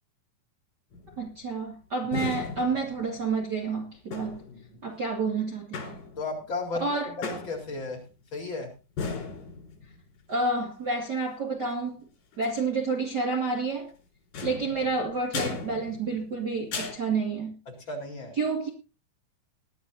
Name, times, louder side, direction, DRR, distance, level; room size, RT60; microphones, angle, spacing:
sound 1, 0.9-1.4 2.1-3.4 4.1-4.7 5.7-6.5 7.2-8.0 9.0-10.0 12.3-12.6 14.3-16.4 16.7-17.0, left 4 dB, 80° left, 5.8 m, -36 dB
voice 1, 1.2-4.4 4.8-6.0 6.8-7.1 10.3-12.1 12.4-13.9 14.4-17.6 18.4-18.7, right 3 dB, 35° right, 2.4 m, -29 dB
voice 2, 6.2-6.8 7.2-8.0 8.3-8.7 17.7-18.4, left 3 dB, 35° left, 4.7 m, -34 dB
20.0 x 12.0 x 2.8 m
omnidirectional pair, 4.0 m